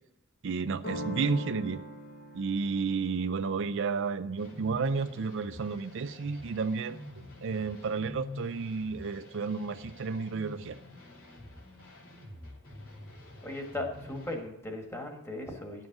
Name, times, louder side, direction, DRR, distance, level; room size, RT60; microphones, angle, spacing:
voice 1, 0.4-1.8 2.3-7.0 7.4-10.8, right 5 dB, 60° right, 11 dB, 0.5 m, -32 dB
sound 1, 0.8-6.4, equal, 50° left, 1.0 m, -44 dB
sound 2, 4.4-14.3, left 2 dB, 80° left, 3.1 m, -47 dB
voice 2, 13.4-15.9, left 2 dB, 15° left, 2 dB, 1.6 m, -37 dB
11.0 x 7.5 x 6.0 m, 0.88 s
head